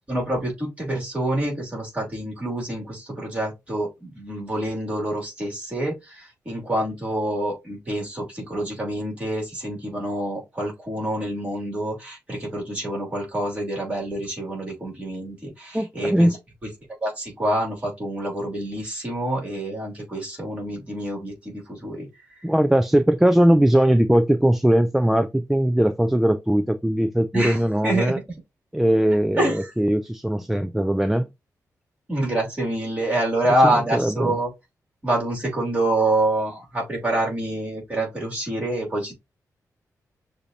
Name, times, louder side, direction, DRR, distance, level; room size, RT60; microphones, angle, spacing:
voice 1, 0.1-16.4 16.6-16.7 17.0-22.1 22.3-22.4 27.3-28.2 29.4-29.7 32.1-34.5 35.0-39.1, right 1 dB, 20° right, 2.8 m, -26 dB
voice 2, 15.7-16.3 22.4-28.2 28.7-31.3 33.6-34.3, right 1 dB, 5° right, 0.4 m, -20 dB
6.5 x 2.7 x 2.8 m
wide cardioid pair, 140°, 6 cm